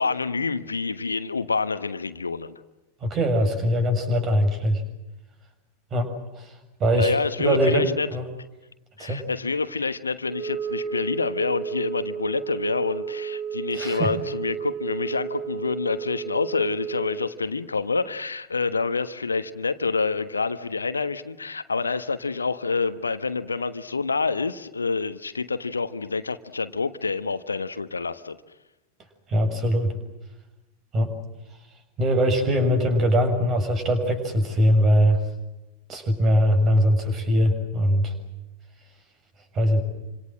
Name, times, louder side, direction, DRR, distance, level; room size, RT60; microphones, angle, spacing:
voice 1, 0.0-2.6 6.9-8.1 9.0-28.4, left 4 dB, 75° left, 11 dB, 1.3 m, -27 dB
voice 2, 3.0-4.8 5.9-6.1 6.4-6.5 6.8-7.1 7.4-8.2 9.0-9.3 13.8-14.1 29.3-30.0 30.9-31.1 32.0-35.2 35.9-38.1 39.5-39.8, equal, 30° right, 8 dB, 6.9 m, -21 dB
Wind instrument woodwind instrument, 10.2-17.3, right 6 dB, 75° right, 4.7 m, -32 dB
28.0 x 26.5 x 7.7 m, 1.0 s
figure-of-eight pair, 90°, 0 cm